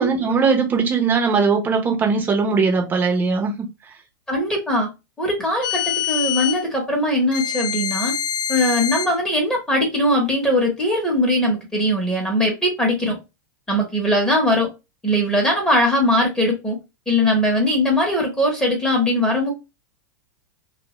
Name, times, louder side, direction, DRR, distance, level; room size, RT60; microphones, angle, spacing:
voice 1, 0.0-3.5, right 5 dB, 20° right, 0.8 m, -19 dB
voice 2, 4.3-4.9 5.2-8.1 8.5-13.2 13.7-14.7 15.0-16.8 17.1-19.5, left 1 dB, 10° left, 1.0 m, -20 dB
sound 1, 5.6-6.6 7.3-9.2, left 10 dB, 80° left, 0.4 m, -25 dB
2.3 x 2.3 x 3.0 m
hypercardioid pair, 130°, 11 cm